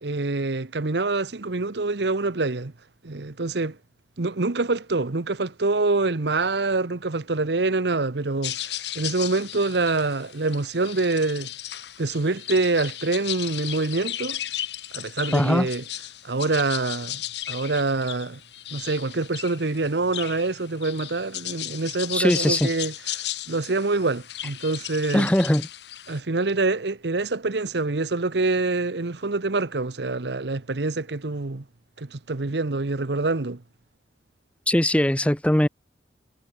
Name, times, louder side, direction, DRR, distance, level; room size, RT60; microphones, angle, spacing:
voice 1, 0.0-2.7 3.0-3.8 4.2-11.5 12.0-14.4 14.9-15.8 16.2-17.2 17.5-18.4 18.7-22.9 23.5-25.3 26.1-31.6 32.0-33.6, right 3 dB, 70° right, 1.0 m, -25 dB
sound 1, 8.4-26.2, left 13 dB, 70° left, 1.6 m, -35 dB
voice 2, 15.3-15.7 22.1-22.6 25.1-25.7 34.7-35.7, left 1 dB, 5° left, 0.8 m, -20 dB
head